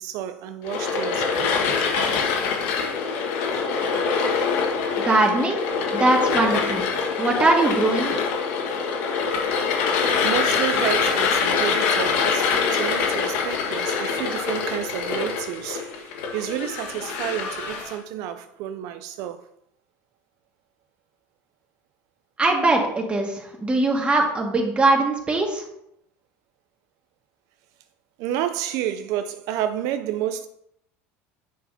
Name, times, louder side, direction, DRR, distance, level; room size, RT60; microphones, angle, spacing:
voice 1, 0.0-1.6 10.1-19.4 28.2-30.5, right 11 dB, 65° right, 0.4 m, -30 dB
sound 1, 0.6-17.9, left 5 dB, 75° left, 1.5 m, -24 dB
voice 2, 5.0-5.6 5.9-6.8 7.2-8.1 22.4-25.6, right 2 dB, 20° right, 1.8 m, -21 dB
9.5 x 5.5 x 2.7 m
supercardioid pair, 110°, 6 cm